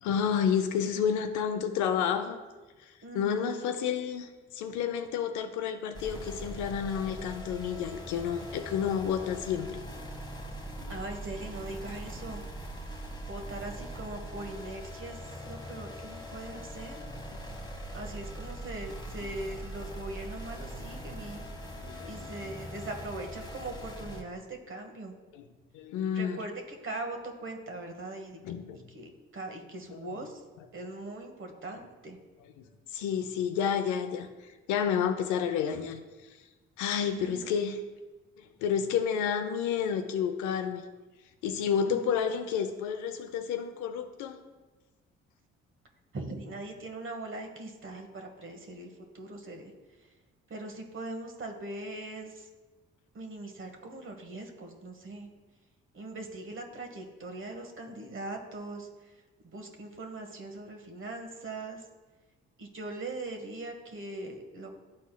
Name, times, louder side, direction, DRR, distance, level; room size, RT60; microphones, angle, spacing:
voice 1, 0.0-2.4 2.8-2.9 3.1-9.8 10.8-10.9 17.3-17.4 21.8-22.5 25.3-25.4 25.7-26.4 28.4-28.8 29.9-30.0 32.9-36.0 36.8-37.8 38.4-40.8 41.4-44.4, left 7 dB, 80° left, 8 dB, 0.5 m, -30 dB
voice 2, 3.0-3.7 10.9-12.4 13.2-17.0 17.9-21.4 22.1-25.1 26.1-28.4 28.7-30.4 30.7-32.2 37.1-37.5 41.9-42.1 46.1-49.7 50.0-50.1 50.5-52.5 53.1-55.3 55.9-61.8 62.6-64.8, right 2 dB, 45° right, 4 dB, 1.2 m, -41 dB
sound 1, 5.9-24.2, right 1 dB, 15° left, 1.1 m, -42 dB
10.5 x 4.2 x 2.2 m, 1.2 s
supercardioid pair, 55°, 29 cm